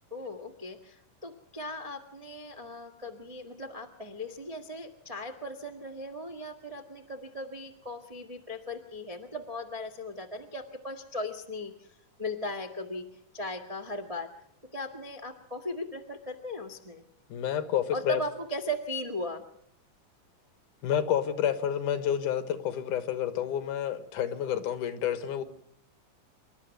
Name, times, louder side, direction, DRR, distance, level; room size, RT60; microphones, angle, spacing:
voice 1, 0.1-13.1 13.3-14.3 14.7-17.0 17.9-19.4, left 1 dB, 25° right, 0.7 m, -38 dB
voice 2, 17.3-18.2 20.8-25.4, left 9 dB, 70° left, 2.7 m, -29 dB
26.5 x 12.0 x 9.2 m
omnidirectional pair, 4.0 m